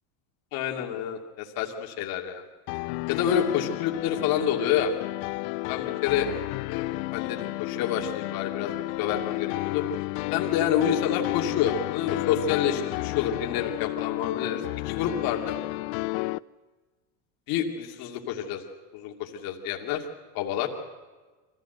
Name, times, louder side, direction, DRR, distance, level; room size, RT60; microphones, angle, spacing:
voice 1, 0.5-2.4 3.1-4.9 5.7-6.3 6.7-9.8 10.3-15.6 17.5-18.6 18.9-20.0 20.3-20.7, left 9 dB, 55° left, 1 dB, 2.6 m, -28 dB
sound 1, 2.7-16.4, left 22 dB, 75° left, 0.5 m, -31 dB
24.5 x 15.0 x 7.9 m, 1.3 s
cardioid pair, 155°, 42 cm